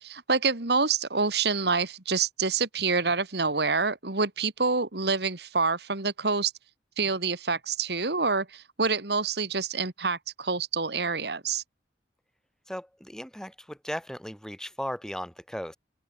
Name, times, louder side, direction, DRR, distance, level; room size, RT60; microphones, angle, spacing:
voice 1, 0.0-6.5 7.0-11.6, right 4 dB, 65° right, 2.2 m, -27 dB
voice 2, 12.7-15.8, equal, 5° left, 7.1 m, -36 dB
open air
head